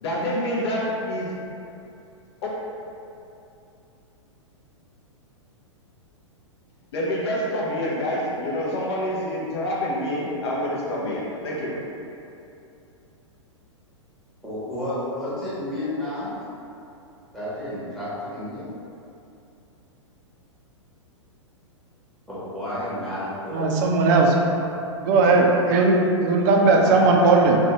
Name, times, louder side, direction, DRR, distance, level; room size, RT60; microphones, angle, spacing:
voice 1, 0.0-1.3 6.9-11.7, equal, 55° left, -5 dB, 0.6 m, -27 dB
voice 2, 14.4-16.3 17.3-18.7 22.3-23.7 25.2-25.3 26.7-27.3, left 1 dB, ahead, -13 dB, 0.9 m, -31 dB
voice 3, 23.5-24.4 25.0-27.6, right 3 dB, 35° right, 0 dB, 0.4 m, -18 dB
2.5 x 2.2 x 2.8 m, 2.7 s
figure-of-eight pair, 105°, 16 cm